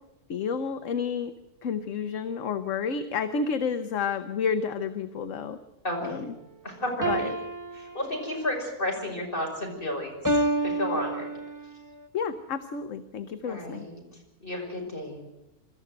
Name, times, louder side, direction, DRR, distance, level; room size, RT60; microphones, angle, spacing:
voice 1, 0.3-1.3 1.6-5.6 6.0-6.3 7.1-7.3 12.1-13.9, left 6 dB, 60° left, 10 dB, 1.2 m, -30 dB
voice 2, 5.8-6.3 6.6-7.3 7.7-11.3 13.4-14.0 14.4-15.2, left 1 dB, 35° left, 0 dB, 6.1 m, -32 dB
sound 1, 7.0-8.6 10.2-11.7, right 2 dB, 15° right, 1.0 m, -29 dB
25.5 x 13.5 x 8.0 m, 0.94 s
omnidirectional pair, 1.6 m